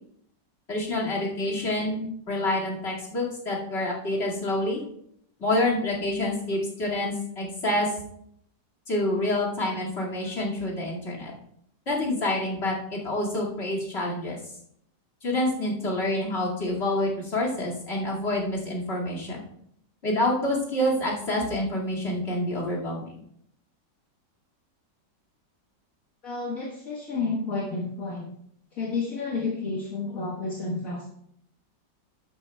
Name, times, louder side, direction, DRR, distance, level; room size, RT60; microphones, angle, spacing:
voice 1, 0.7-4.8 5.4-7.9 8.9-11.3 11.9-14.4 15.2-19.4 20.0-23.0, left 1 dB, 35° left, -4 dB, 2.4 m, -27 dB
voice 2, 26.2-28.3 28.8-31.0, left 3 dB, 50° left, -5 dB, 1.9 m, -30 dB
12.5 x 9.7 x 2.3 m, 0.70 s
omnidirectional pair, 1.9 m